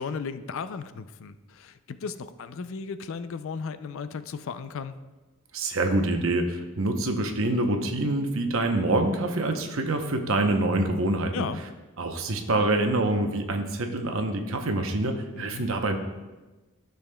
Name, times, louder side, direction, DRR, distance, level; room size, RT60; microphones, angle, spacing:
voice 1, 0.0-5.0 11.3-11.6 15.4-15.6, left 5 dB, 60° left, 12 dB, 0.4 m, -35 dB
voice 2, 5.5-11.5 12.0-16.0, right 2 dB, 65° right, 5 dB, 0.8 m, -26 dB
13.0 x 6.8 x 2.3 m, 1.2 s
head